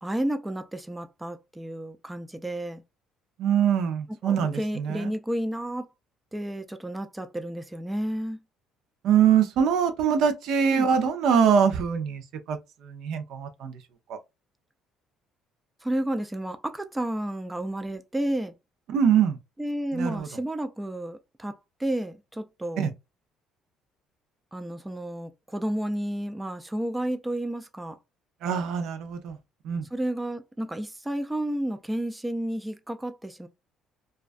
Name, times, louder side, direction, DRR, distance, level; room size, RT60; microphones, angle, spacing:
voice 1, 0.0-2.8 4.2-5.9 6.3-8.4 10.7-10.9 15.8-18.5 19.6-22.9 24.5-28.0 29.9-33.5, right 1 dB, 10° right, 0.3 m, -31 dB
voice 2, 3.4-5.1 9.0-13.8 14.1-14.2 18.9-19.4 19.9-20.3 22.8-22.9 28.4-29.4 29.6-29.9, right 7 dB, 70° right, 0.5 m, -23 dB
2.3 x 2.2 x 2.4 m
supercardioid pair, 70°, 0 cm